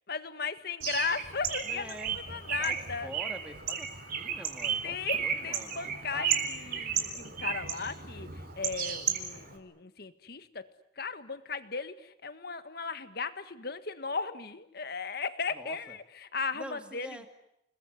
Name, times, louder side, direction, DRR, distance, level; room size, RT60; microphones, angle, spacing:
voice 1, 0.1-3.1 4.8-10.7 11.0-17.3, left 5 dB, 55° left, 11 dB, 1.7 m, -36 dB
Bird, 0.8-9.6, right 7 dB, 50° right, 4.0 m, -34 dB
voice 2, 1.6-2.2 2.6-6.4 15.5-16.0 16.5-17.3, equal, 5° right, 6 dB, 2.3 m, -46 dB
29.0 x 21.0 x 9.7 m, 0.79 s
head